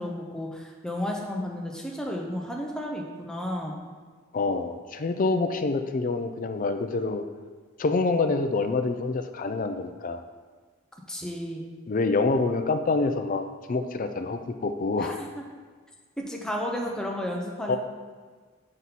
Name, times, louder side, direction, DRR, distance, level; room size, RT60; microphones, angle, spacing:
voice 1, 0.0-3.8 11.1-11.7 15.0-15.3 16.2-17.8, left 1 dB, 5° left, -1 dB, 0.7 m, -32 dB
voice 2, 4.3-7.2 7.8-10.2 11.9-15.1 17.7-17.8, left 3 dB, 40° left, 8 dB, 0.4 m, -26 dB
6.1 x 5.4 x 4.1 m, 1.5 s
head